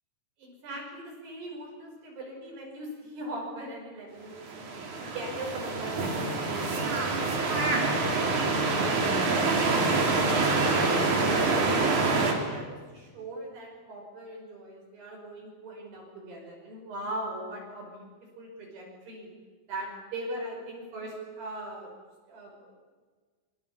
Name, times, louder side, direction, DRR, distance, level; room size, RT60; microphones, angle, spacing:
voice 1, 0.4-4.7 5.0-7.2 8.6-10.1 10.5-11.1 11.5-19.3 19.7-21.9 22.3-22.7, right 1 dB, 65° right, -1 dB, 7.5 m, -40 dB
sound 1, 4.4-12.3, right 3 dB, 45° right, 4.7 m, -26 dB
26.0 x 24.0 x 8.7 m, 1.5 s
omnidirectional pair, 5.1 m